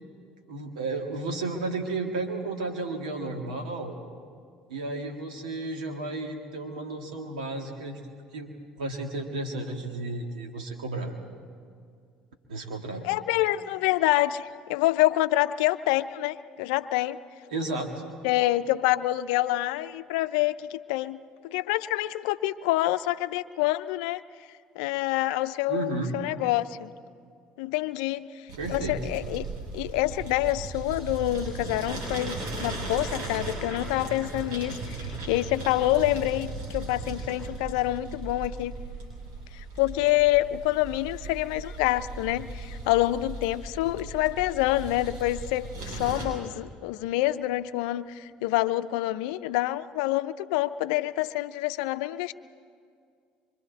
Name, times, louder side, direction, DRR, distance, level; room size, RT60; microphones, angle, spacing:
voice 1, 0.5-4.0 4.7-11.1 12.5-13.0 17.5-17.9 25.7-26.1 28.6-29.0, right 2 dB, 90° right, 3 dB, 2.2 m, -33 dB
voice 2, 13.0-17.2 18.2-24.2 24.8-26.9 27.6-29.5 29.7-38.7 39.5-52.3, left 16 dB, 75° left, 13 dB, 0.6 m, -27 dB
sound 1, 28.5-46.2, right 3 dB, 75° right, 7.5 m, -37 dB
25.5 x 24.5 x 4.2 m, 2.2 s
hypercardioid pair, 65°, 4 cm